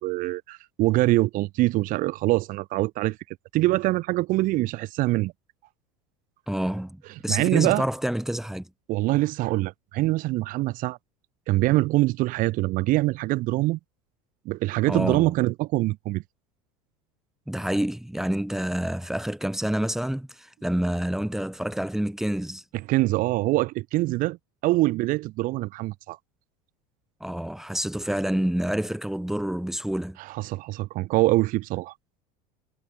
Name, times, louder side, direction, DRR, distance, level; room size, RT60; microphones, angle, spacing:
voice 1, 0.0-3.2 3.5-5.3 7.3-7.8 8.9-11.0 11.5-13.8 14.5-16.2 22.9-24.4 24.6-26.2 30.2-31.9, right 19 dB, 50° right, 2.5 m, -24 dB
voice 2, 6.5-8.7 14.9-15.3 17.5-22.6 27.2-30.2, right 1 dB, ahead, 2.1 m, -28 dB
supercardioid pair, 135°, 17 cm